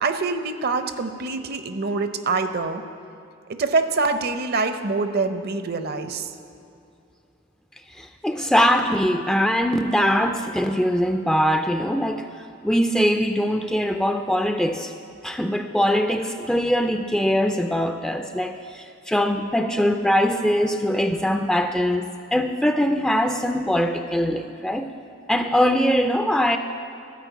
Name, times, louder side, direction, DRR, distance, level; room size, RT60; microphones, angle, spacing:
voice 1, 0.0-2.8 3.5-6.3, right 3 dB, 50° right, 9 dB, 0.6 m, -25 dB
voice 2, 8.0-12.3 12.6-14.9 15.2-24.9 25.3-26.6, equal, 5° left, 6 dB, 0.3 m, -22 dB
12.5 x 5.1 x 8.2 m, 2.7 s
head